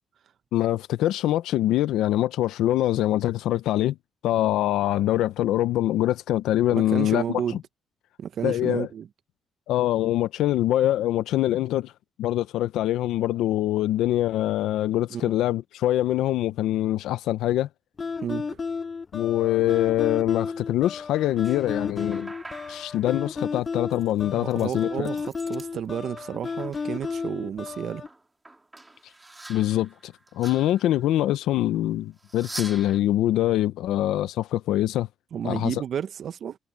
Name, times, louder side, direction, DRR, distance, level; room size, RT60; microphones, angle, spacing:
voice 1, 0.5-4.0 4.2-7.4 8.4-8.9 9.7-11.9 12.2-17.7 19.1-22.3 22.7-25.1 29.5-35.1 35.4-35.8, left 13 dB, 90° left, 0.6 m, -24 dB
voice 2, 6.7-7.6 8.2-9.1 15.1-15.3 18.2-18.6 24.2-28.0 35.3-36.6, right 9 dB, 60° right, 0.7 m, -31 dB
sound 1, 18.0-28.1, left 5 dB, 35° left, 0.3 m, -33 dB
sound 2, 21.2-25.7 26.0-27.3 27.7-31.3 32.2-33.0, right 2 dB, 15° right, 2.5 m, -45 dB
cardioid pair, 90°, 0 cm